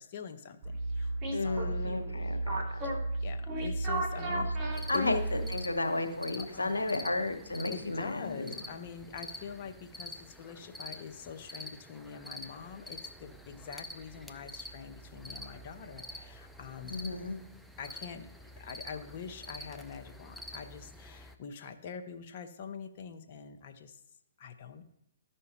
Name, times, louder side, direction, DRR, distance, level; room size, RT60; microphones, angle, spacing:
voice 1, 0.0-1.8 3.2-4.5 4.9-5.2 6.4-7.1 7.7-17.0 17.8-18.3 18.6-24.0 24.4-24.8, left 6 dB, 45° left, 7 dB, 0.8 m, -44 dB
sound 1, 0.6-5.7, right 2 dB, 30° right, 1.4 m, -33 dB
voice 2, 1.3-2.6 4.1-4.4 4.9-8.6 16.8-17.4, left 2 dB, 85° left, 6 dB, 1.0 m, -33 dB
sound 2, 4.7-21.3, left 1 dB, ahead, 0.5 m, -47 dB
13.5 x 5.5 x 2.9 m, 0.80 s
figure-of-eight pair, 130°, 0 cm